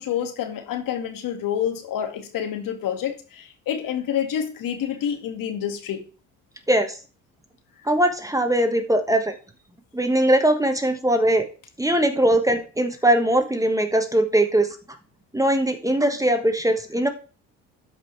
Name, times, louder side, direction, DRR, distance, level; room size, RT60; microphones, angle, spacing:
voice 1, 0.0-6.0, left 9 dB, 60° left, 1.9 m, -28 dB
voice 2, 7.8-9.3 9.9-11.5 11.8-14.8 15.3-17.1, right 1 dB, 10° right, 1.3 m, -20 dB
12.0 x 5.3 x 3.2 m
hypercardioid pair, 65°, 37 cm